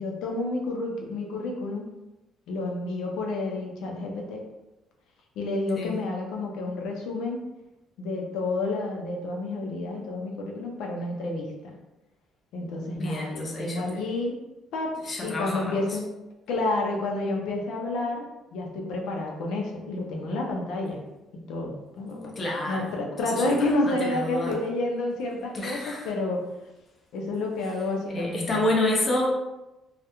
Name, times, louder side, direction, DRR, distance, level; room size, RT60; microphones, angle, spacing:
voice 1, 0.0-1.9 2.5-4.4 5.4-7.4 8.0-11.8 12.5-14.4 14.7-16.1 16.5-18.3 18.5-21.0 21.5-22.3 22.7-26.4 27.1-28.6, left 2 dB, 85° left, 0 dB, 0.4 m, -30 dB
voice 2, 12.9-14.0 15.0-15.8 22.4-22.8 23.8-24.6 25.5-26.1 28.1-29.3, left 1 dB, 25° left, -3 dB, 0.5 m, -28 dB
2.3 x 2.1 x 2.8 m, 0.98 s
cardioid pair, 175°, 0 cm